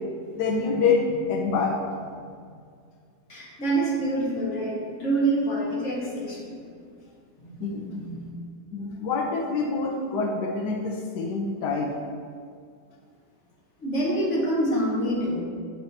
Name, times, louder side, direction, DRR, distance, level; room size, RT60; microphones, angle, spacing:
voice 1, 0.4-1.8 7.6-7.9 8.7-12.0, left 4 dB, 90° left, 0 dB, 1.4 m, -26 dB
voice 2, 3.3-6.6 7.4-7.7 8.0-8.3 13.8-15.4, right 1 dB, 45° left, -5 dB, 2.2 m, -26 dB
10.5 x 7.9 x 2.9 m, 2.2 s
omnidirectional pair, 1.7 m